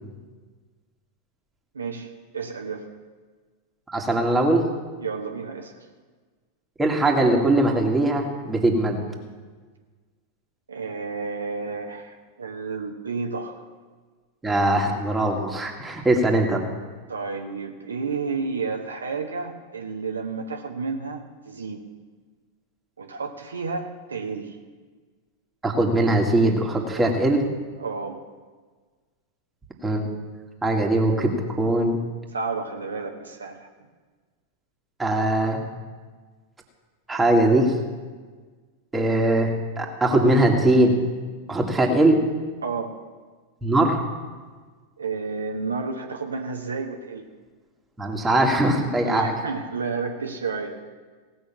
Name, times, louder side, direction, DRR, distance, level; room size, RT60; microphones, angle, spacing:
voice 1, 1.7-2.9 5.0-5.8 10.7-13.6 17.1-21.8 23.0-24.6 27.8-28.2 32.3-33.7 42.6-43.0 45.0-47.2 49.0-50.7, right 4 dB, 75° right, 3 dB, 1.2 m, -31 dB
voice 2, 3.9-4.7 6.8-9.0 14.4-16.7 25.6-27.4 29.8-30.2 30.6-32.0 35.0-35.6 37.1-37.7 38.9-41.0 41.5-42.2 43.6-44.0 48.0-49.3, right 1 dB, 10° right, 0 dB, 2.1 m, -21 dB
17.5 x 6.3 x 7.3 m, 1.4 s
figure-of-eight pair, 90°, 0 cm